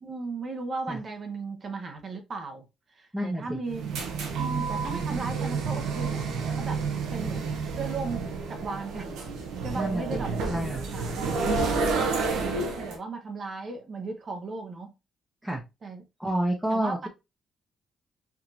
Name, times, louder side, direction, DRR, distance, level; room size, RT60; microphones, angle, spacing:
voice 1, 0.0-2.6 2.9-3.9 4.4-6.3 6.5-7.4 7.8-9.2 9.6-10.5 10.9-11.3 12.6-14.9 15.8-16.0 16.7-17.1, right 3 dB, 50° right, 0.9 m, -36 dB
voice 2, 3.1-3.6 9.7-10.9 15.4-15.6 16.2-17.1, right 1 dB, 10° right, 1.0 m, -29 dB
sound 1, 3.7-13.0, right 4 dB, 85° right, 0.9 m, -30 dB
4.5 x 2.8 x 2.6 m
supercardioid pair, 60°, 0 cm